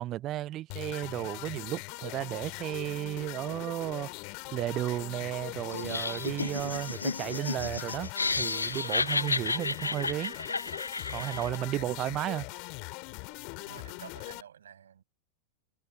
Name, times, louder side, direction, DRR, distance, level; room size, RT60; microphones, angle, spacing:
voice 1, 0.0-4.1 4.5-8.1 8.4-10.4 11.1-12.4, right 14 dB, 35° right, 0.6 m, -33 dB
sound 1, 0.7-14.4, left 36 dB, 45° left, 2.7 m, -41 dB
Laughter, 5.7-11.6, left 3 dB, 80° left, 0.6 m, -32 dB
voice 2, 11.7-12.6 13.6-15.0, right 8 dB, 65° right, 7.3 m, -50 dB
figure-of-eight pair, 90°, 0 cm